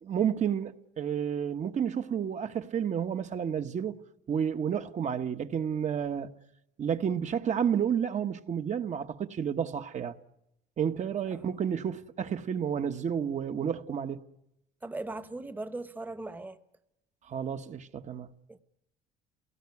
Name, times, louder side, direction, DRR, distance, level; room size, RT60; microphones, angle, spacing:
voice 1, 0.0-4.0 4.3-6.3 6.8-10.2 10.8-14.2 17.3-18.3, right 8 dB, 45° right, 1.2 m, -31 dB
voice 2, 14.8-16.6 18.5-18.6, right 2 dB, 10° right, 1.1 m, -39 dB
28.0 x 18.0 x 9.7 m
cardioid pair, 110°, 17 cm